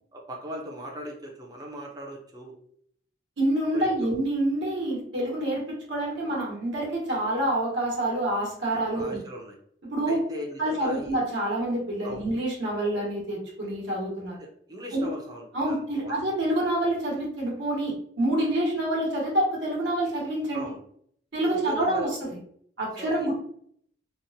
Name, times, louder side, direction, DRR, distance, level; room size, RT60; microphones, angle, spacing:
voice 1, 0.1-2.6 3.7-4.1 8.9-9.6 10.1-11.1 12.0-12.3 14.4-16.1 20.5-20.8 21.4-22.2 23.0-23.3, equal, 20° right, 0 dB, 0.5 m, -39 dB
voice 2, 3.4-9.2 9.8-10.2 10.6-14.4 14.9-15.1 15.5-20.7 21.3-22.3 22.8-23.3, right 1 dB, 80° right, -4 dB, 1.0 m, -27 dB
2.8 x 2.0 x 2.7 m, 0.65 s
head